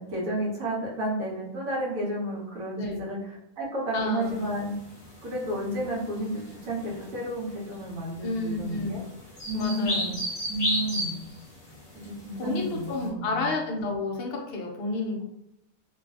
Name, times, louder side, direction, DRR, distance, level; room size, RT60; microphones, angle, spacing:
voice 1, 0.0-4.7 5.2-9.0 9.5-10.2 10.5-11.2 12.0-13.5, right 1 dB, 70° right, -4 dB, 1.3 m, -32 dB
voice 2, 3.9-4.4 8.2-9.0 9.5-10.1 12.4-15.2, left 3 dB, 60° left, 0 dB, 0.6 m, -30 dB
sound 1, 4.2-13.0, equal, 30° left, 1.0 m, -34 dB
3.1 x 2.3 x 2.3 m, 0.81 s
omnidirectional pair, 1.5 m